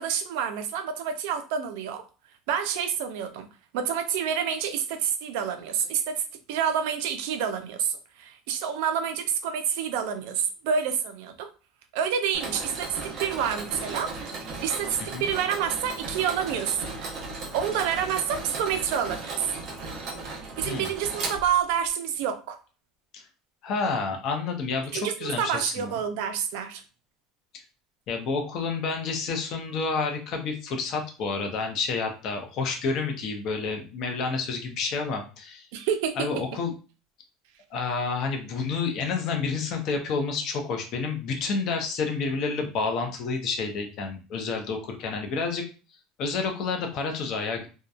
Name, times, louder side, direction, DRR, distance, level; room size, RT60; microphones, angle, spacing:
voice 1, 0.0-2.0 2.5-3.5 3.7-6.2 6.5-11.5 11.9-14.1 14.4-16.9 17.5-19.5 20.6-22.6 24.9-26.8 35.7-36.4, right 8 dB, 80° right, 8 dB, 0.4 m, -28 dB
Mechanisms, 12.3-21.9, right 3 dB, 50° right, 0.7 m, -36 dB
voice 2, 23.6-26.0 28.1-35.7 36.2-36.7 37.7-45.6 46.2-47.7, left 4 dB, 50° left, 4 dB, 0.6 m, -29 dB
2.7 x 2.1 x 2.3 m, 0.34 s
cardioid pair, 150°, 0 cm